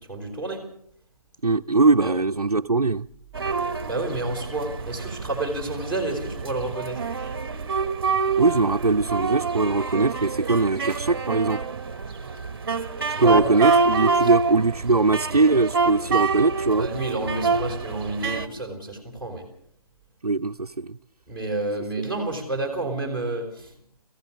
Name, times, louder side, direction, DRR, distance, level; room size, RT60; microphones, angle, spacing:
voice 1, 0.1-0.7 2.0-2.1 3.8-7.0 13.2-13.8 14.2-14.3 16.8-19.5 21.3-23.7, right 2 dB, 5° left, 3.8 m, -30 dB
voice 2, 1.4-3.1 8.4-11.7 13.2-16.9 20.2-21.0, right 3 dB, 85° right, 0.8 m, -21 dB
sound 1, 3.3-18.5, right 5 dB, 40° right, 1.3 m, -27 dB
25.5 x 15.5 x 6.5 m
figure-of-eight pair, 150°, 19 cm